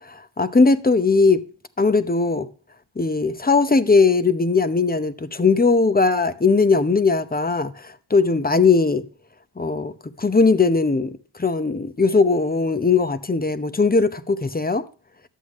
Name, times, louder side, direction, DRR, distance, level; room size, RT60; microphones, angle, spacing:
voice 1, 0.1-1.4 1.8-2.5 3.0-9.1 9.6-9.9 10.2-11.1 11.4-14.8, left 4 dB, 20° left, 0.8 m, -19 dB
11.0 x 7.9 x 3.1 m
wide cardioid pair, 75°, 48 cm